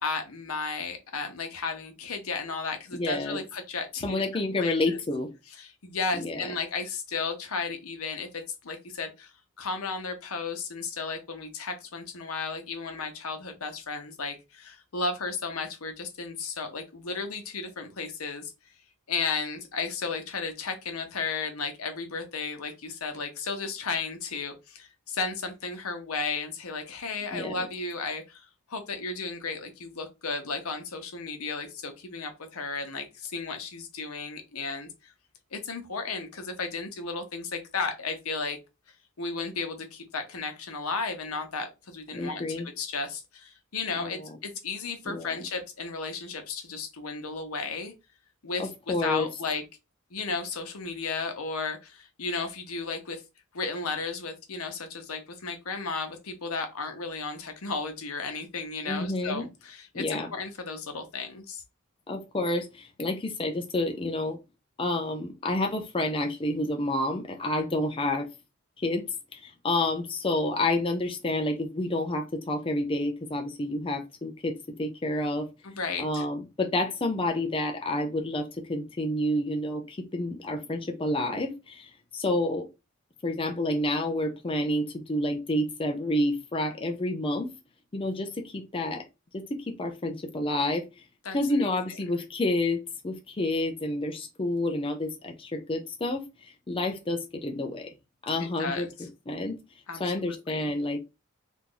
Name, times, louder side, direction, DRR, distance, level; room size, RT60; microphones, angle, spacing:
voice 1, 0.0-4.2 4.6-5.0 5.6-9.3 9.6-18.5 19.1-35.1 35.5-38.6 39.2-47.9 48.4-49.6 50.1-53.2 53.5-61.6 75.6-76.2 91.2-91.8 98.6-98.9 99.9-100.1 100.5-100.7, left 4 dB, 80° left, 0.9 m, -34 dB
voice 2, 2.9-3.4 4.0-5.3 6.1-6.5 27.3-27.6 42.1-42.7 44.0-44.4 45.1-45.4 48.6-49.3 58.8-59.4 59.9-60.3 62.1-64.4 64.8-68.3 68.8-69.0 69.3-75.5 76.0-82.7 83.2-87.5 87.9-89.0 89.3-90.9 91.3-96.2 96.7-97.9 98.2-98.9 99.3-99.6 100.0-101.0, left 1 dB, 25° left, 0.5 m, -29 dB
2.9 x 2.6 x 3.7 m
head